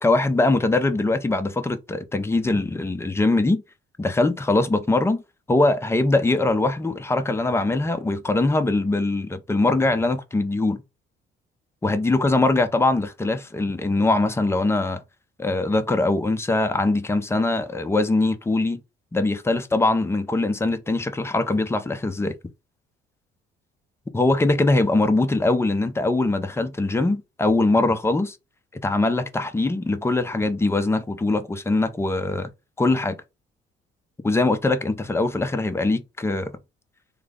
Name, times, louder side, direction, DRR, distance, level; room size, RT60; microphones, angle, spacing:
voice 1, 0.0-3.6 4.0-5.2 5.5-10.8 11.8-15.0 15.4-18.8 19.1-22.3 24.1-28.4 28.8-32.5 32.8-33.2 34.2-36.5, left 2 dB, 15° left, 0.5 m, -22 dB
3.3 x 2.0 x 3.6 m
cardioid pair, 110°, 20 cm